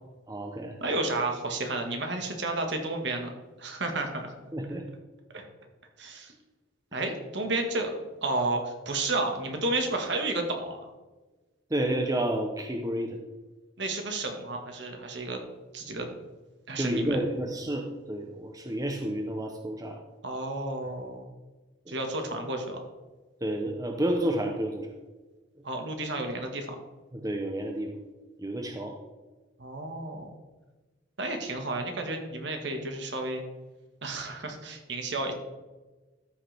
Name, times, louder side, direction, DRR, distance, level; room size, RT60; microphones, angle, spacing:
voice 1, 0.3-0.8 4.5-4.9 11.7-13.2 16.8-20.0 21.9-22.0 23.4-24.9 27.1-27.9 28.4-28.9, right 1 dB, 20° right, 3 dB, 0.7 m, -30 dB
voice 2, 0.8-3.3 3.6-4.3 5.3-5.4 6.0-6.3 6.9-10.9 13.8-15.4 15.7-16.1 16.7-17.2 20.2-21.3 21.9-22.8 25.6-26.8 29.6-30.3 31.2-33.4 34.0-35.3, right 2 dB, 60° right, 4 dB, 1.6 m, -31 dB
13.5 x 6.4 x 3.4 m, 1.2 s
head